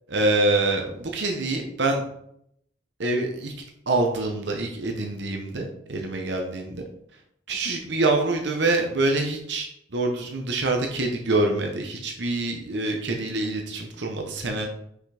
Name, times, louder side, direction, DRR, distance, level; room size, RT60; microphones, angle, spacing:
voice 1, 0.1-2.0 3.0-3.5 3.9-6.8 7.5-14.7, right 2 dB, 70° right, 2 dB, 0.9 m, -25 dB
5.8 x 5.8 x 3.4 m, 0.73 s
head